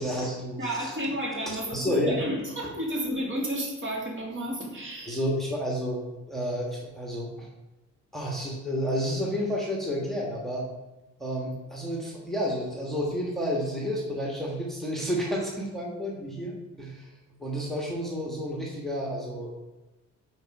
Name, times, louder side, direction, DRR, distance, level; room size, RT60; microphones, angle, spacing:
voice 1, 0.0-1.0 1.5-2.1 5.1-7.5 8.1-10.6 11.2-17.1 17.4-19.5, equal, ahead, -3 dB, 1.5 m, -30 dB
voice 2, 0.6-5.2, equal, 40° right, -3 dB, 2.5 m, -32 dB
8.0 x 4.5 x 4.8 m, 1.1 s
cardioid pair, 90°, 30 cm